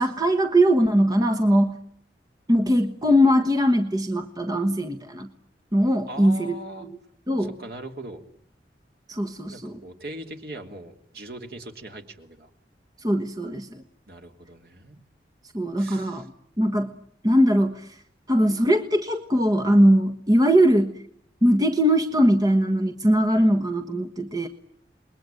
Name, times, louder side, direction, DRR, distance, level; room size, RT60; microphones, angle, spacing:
voice 1, 0.0-1.8 2.5-5.3 5.7-6.5 6.8-6.9 7.3-7.5 9.1-9.7 13.0-13.8 15.5-16.3 16.6-16.9 17.2-17.9 18.3-21.0 21.4-24.5, equal, 20° right, 6 dB, 1.4 m, -20 dB
voice 2, 6.1-6.9 7.4-8.2 9.5-12.5 14.1-15.0 15.8-16.3, right 1 dB, 55° right, 4 dB, 3.1 m, -40 dB
28.0 x 21.5 x 9.1 m, 0.68 s
head